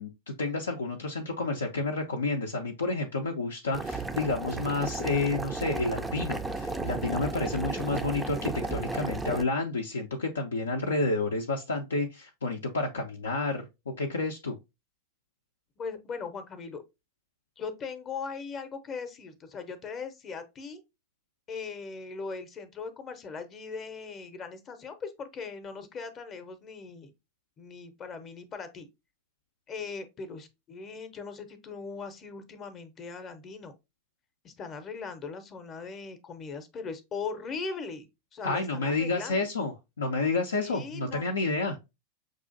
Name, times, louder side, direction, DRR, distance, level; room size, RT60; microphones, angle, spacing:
voice 1, 0.0-14.6 38.4-41.8, left 3 dB, 70° left, 0.5 m, -30 dB
Boiling, 3.7-9.4, right 3 dB, 5° right, 0.4 m, -34 dB
voice 2, 15.8-16.8 17.6-20.8 21.5-27.1 27.6-28.9 29.7-33.7 34.4-38.1 38.3-39.4 40.6-41.3, left 5 dB, 30° left, 0.7 m, -39 dB
6.0 x 2.5 x 2.5 m
figure-of-eight pair, 90°, 0 cm